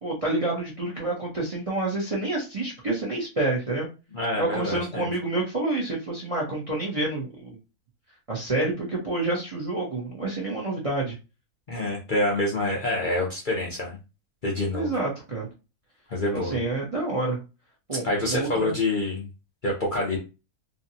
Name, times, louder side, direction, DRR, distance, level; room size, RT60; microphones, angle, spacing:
voice 1, 0.0-3.9 4.4-7.6 8.3-11.2 14.7-15.5 16.3-17.4 17.9-18.8, right 2 dB, 30° right, -3 dB, 0.7 m, -28 dB
voice 2, 4.1-5.1 11.7-14.0 14.4-14.9 16.1-16.6 18.0-19.3 19.6-20.2, left 1 dB, 45° left, -3 dB, 0.7 m, -27 dB
2.8 x 2.7 x 2.7 m, 0.29 s
omnidirectional pair, 1.6 m